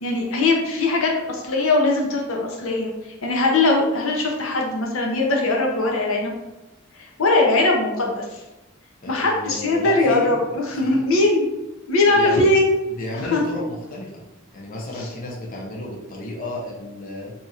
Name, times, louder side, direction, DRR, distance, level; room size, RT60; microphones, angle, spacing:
voice 1, 0.0-2.9 3.2-6.3 7.2-8.4 9.1-11.5 11.9-12.7 13.2-13.4 15.0-15.1, left 2 dB, 80° left, 0 dB, 0.6 m, -20 dB
voice 2, 9.0-10.3 10.8-11.1 12.1-12.4 13.0-14.1 14.5-17.3, left 1 dB, 40° left, -3 dB, 0.6 m, -32 dB
2.8 x 2.4 x 4.1 m, 1.0 s
head